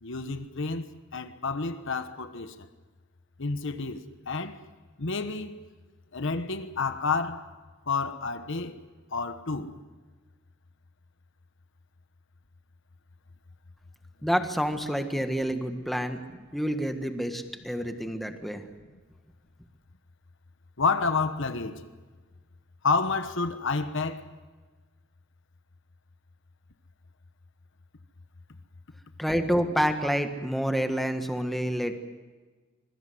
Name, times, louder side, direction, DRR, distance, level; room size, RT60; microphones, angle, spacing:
voice 1, 0.0-2.7 3.4-4.6 5.0-5.6 6.1-7.5 7.9-8.8 9.1-9.8 20.8-21.8 22.8-24.3, left 4 dB, 65° left, 1.2 m, -30 dB
voice 2, 14.2-18.6 29.2-32.0, equal, ahead, 1.5 m, -28 dB
25.5 x 21.5 x 7.9 m
head